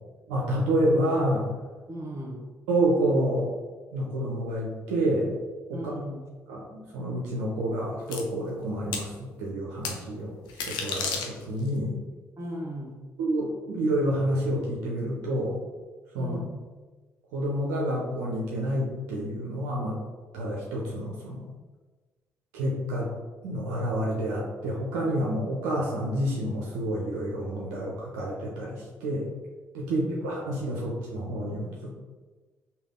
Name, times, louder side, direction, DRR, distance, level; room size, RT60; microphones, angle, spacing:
voice 1, 0.3-1.5 2.7-3.5 3.9-5.4 5.7-5.9 6.5-6.6 6.9-12.0 13.2-15.6 16.1-16.4 17.3-20.0 20.3-21.5 22.5-23.1 23.4-29.3 29.7-31.9, right 1 dB, 85° right, -4 dB, 0.6 m, -28 dB
voice 2, 1.9-2.5 5.7-6.2 12.4-13.0 16.2-16.6 29.9-30.2, equal, 40° right, -1 dB, 1.1 m, -37 dB
sound 1, 8.1-8.2 8.9-9.1 9.8-10.0 10.5-11.7, left 5 dB, 75° left, 0.5 m, -31 dB
3.3 x 2.4 x 3.6 m, 1.3 s
hypercardioid pair, 50°, 8 cm